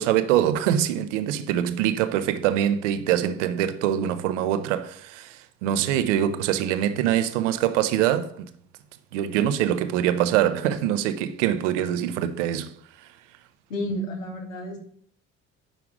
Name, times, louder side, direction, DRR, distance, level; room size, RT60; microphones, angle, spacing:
voice 1, 0.0-8.5 9.1-12.7, right 11 dB, 75° right, 0.9 m, -24 dB
voice 2, 13.7-14.8, equal, 85° left, 2.1 m, -31 dB
10.0 x 5.8 x 5.0 m
figure-of-eight pair, 50°, 37 cm